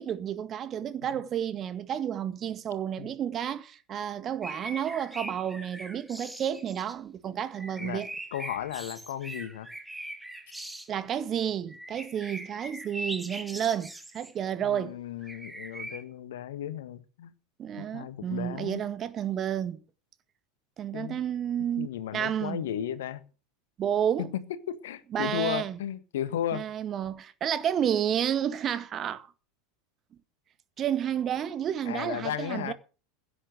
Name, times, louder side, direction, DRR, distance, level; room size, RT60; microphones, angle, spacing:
voice 1, 0.0-8.1 10.9-15.0 17.6-19.8 20.8-21.9 22.1-22.6 23.8-24.3 25.1-25.8 26.5-29.3 30.8-32.7, right 9 dB, 30° right, 1.8 m, -31 dB
sound 1, 4.4-6.9 7.5-10.9 11.7-14.3 15.2-16.0, right 1 dB, 5° right, 2.2 m, -41 dB
voice 2, 8.3-9.7 14.6-17.3 17.8-18.8 20.9-21.2 21.8-23.2 24.2-26.7 31.8-32.7, left 10 dB, 65° left, 1.6 m, -35 dB
16.5 x 8.8 x 7.6 m
figure-of-eight pair, 80°, 0 cm